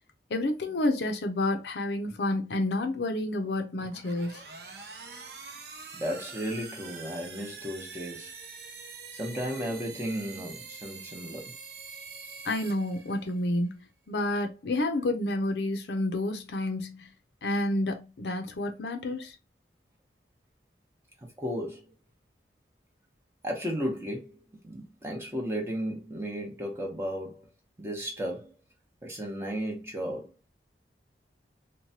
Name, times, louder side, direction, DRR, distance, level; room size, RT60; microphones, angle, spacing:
voice 1, 0.3-4.4 12.4-13.8 14.1-17.1 17.4-19.4, left 1 dB, 65° left, 0.5 m, -29 dB
sound 1, 3.8-13.5, right 4 dB, 60° right, 0.5 m, -45 dB
voice 2, 4.9-5.3 6.0-8.3 9.1-11.4 21.4-21.9 23.4-27.5 27.8-28.5 29.0-30.3, equal, 15° right, 0.8 m, -34 dB
3.0 x 2.2 x 2.7 m
head